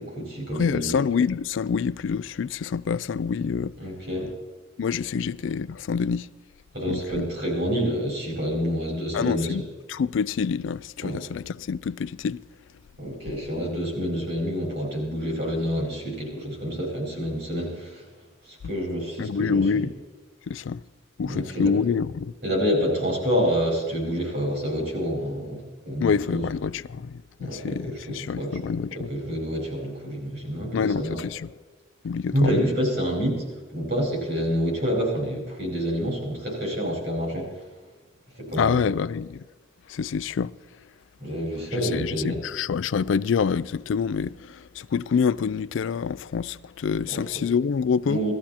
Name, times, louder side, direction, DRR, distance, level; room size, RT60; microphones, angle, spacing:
voice 1, 0.0-0.9 3.8-4.3 6.7-9.5 11.0-11.2 13.0-18.0 18.4-19.6 21.2-21.7 22.4-26.4 27.4-28.5 28.9-31.2 32.3-33.4 33.7-37.5 38.4-38.8 41.2-42.4 47.1-47.2 48.1-48.3, equal, 55° right, 4.8 m, -28 dB
voice 2, 0.5-3.8 4.8-6.3 6.9-7.3 9.1-12.4 19.2-19.9 20.5-20.8 21.2-22.3 26.0-29.1 30.7-31.5 32.0-32.6 38.6-39.4 39.9-40.5 41.7-48.2, left 6 dB, 80° left, 0.4 m, -26 dB
18.5 x 13.5 x 4.3 m
head